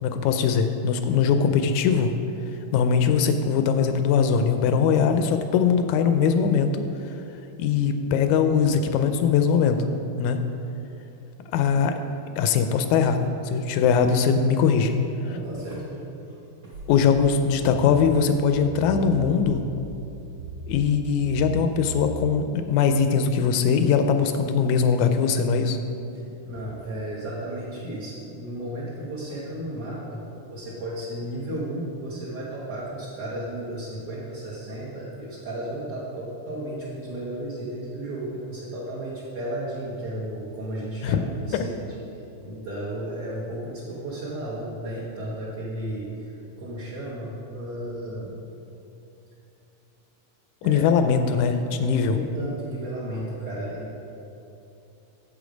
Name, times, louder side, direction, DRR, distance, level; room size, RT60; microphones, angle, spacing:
voice 1, 0.0-2.1 2.7-6.8 7.6-9.8 10.2-10.4 11.5-11.9 12.4-15.0 16.9-19.6 20.7-25.8 41.0-41.2 41.5-41.6 50.6-52.2, left 6 dB, 80° left, 7 dB, 1.9 m, -21 dB
voice 2, 15.2-16.4 16.6-16.8 26.1-41.9 42.4-48.4 50.6-50.8 51.8-53.9, right 1 dB, 55° right, -8 dB, 2.0 m, -34 dB
sound 1, 16.7-22.2, right 2 dB, 80° right, 2.2 m, -38 dB
8.3 x 7.6 x 5.1 m, 2.8 s
omnidirectional pair, 3.6 m